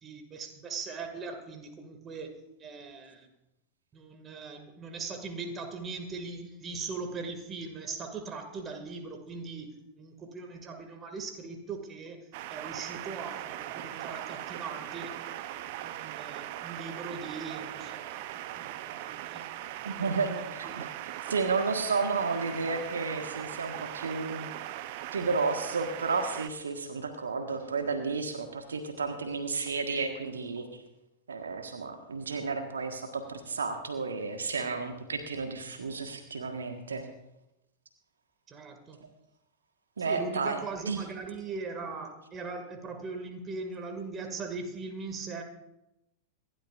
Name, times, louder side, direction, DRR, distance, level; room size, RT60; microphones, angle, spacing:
voice 1, 0.0-3.3 3.9-9.7 10.0-15.2 15.6-19.4 19.9-20.3 20.6-20.7 38.5-39.0 40.0-45.4, right 4 dB, 25° right, 5 dB, 2.2 m, -40 dB
sound 1, 12.3-26.5, right 13 dB, 50° right, 0.7 m, -40 dB
voice 2, 19.8-20.9 21.3-24.5 25.1-30.6 31.3-37.0 40.0-40.6 40.8-41.0, right 4 dB, 70° right, 5 dB, 1.5 m, -32 dB
26.5 x 12.0 x 2.5 m, 0.89 s
figure-of-eight pair, 90°, 0 cm